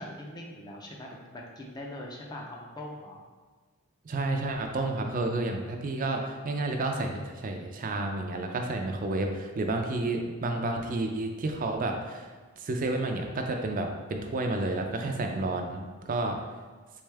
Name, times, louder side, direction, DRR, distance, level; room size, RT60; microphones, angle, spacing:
voice 1, 0.0-3.2, left 1 dB, 20° left, -1 dB, 0.5 m, -42 dB
voice 2, 4.0-16.4, right 2 dB, 40° right, 3 dB, 0.4 m, -31 dB
3.5 x 3.3 x 3.3 m, 1.4 s
head